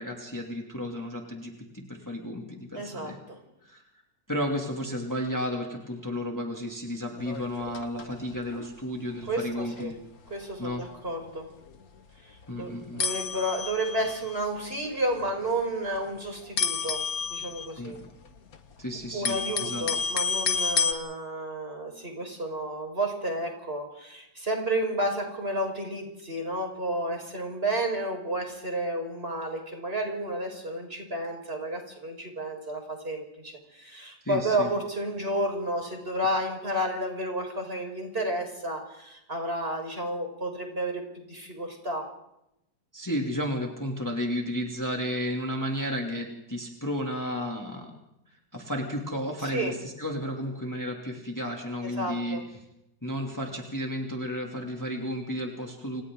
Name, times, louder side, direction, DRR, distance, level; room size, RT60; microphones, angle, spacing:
voice 1, 0.0-3.2 3.6-3.8 4.3-10.0 10.6-10.8 12.5-13.0 17.8-18.1 18.8-19.9 34.2-34.7 42.9-47.9 48.5-52.4 53.0-56.0, equal, 10° left, 0 dB, 2.7 m, -33 dB
voice 2, 2.7-3.4 9.3-9.9 10.3-11.5 12.2-17.0 17.3-18.0 19.1-41.0 41.3-42.0 49.4-49.7 51.8-52.4, right 1 dB, 35° right, 2 dB, 5.4 m, -31 dB
sound 1, 7.2-8.2 8.5-8.7 9.2-9.4 9.8-9.9 10.3-10.4 10.6-10.9 11.7-11.8 12.4-12.5 13.0-14.3 15.1-15.6 15.9-16.1 16.6-18.6 18.9-20.9, left 5 dB, 60° left, 1.8 m, -30 dB
30.0 x 27.5 x 3.9 m, 0.84 s
omnidirectional pair, 1.8 m